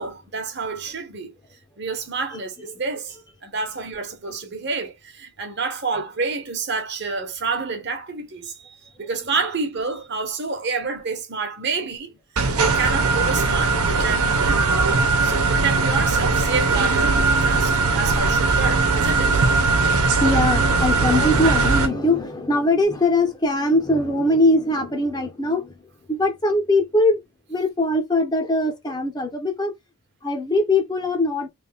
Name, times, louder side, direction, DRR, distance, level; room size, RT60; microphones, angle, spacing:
voice 1, 0.0-1.3 1.8-3.2 3.4-14.8 15.2-19.4, right 4 dB, 50° right, 1.1 m, -29 dB
voice 2, 2.3-2.8 9.0-9.4 15.3-15.4 15.7-15.8 16.5-18.5 19.1-25.8 26.1-27.2 27.5-29.7 30.2-31.5, left 2 dB, 20° left, 0.7 m, -22 dB
sound 1, 12.4-21.9, right 3 dB, 85° right, 1.0 m, -19 dB
3.4 x 2.7 x 3.4 m
head